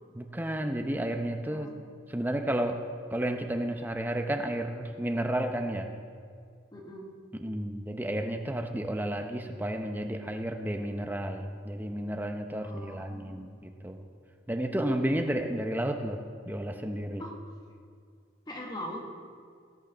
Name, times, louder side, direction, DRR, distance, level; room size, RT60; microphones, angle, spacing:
voice 1, 0.1-1.7 2.1-2.8 3.1-5.9 7.3-14.1 14.5-16.2 16.5-17.2, right 1 dB, 10° right, 4 dB, 0.7 m, -32 dB
voice 2, 6.7-7.1 12.6-13.5 17.2-17.3 18.5-19.1, equal, 20° left, 0 dB, 1.1 m, -42 dB
16.5 x 6.4 x 6.1 m, 2.1 s
head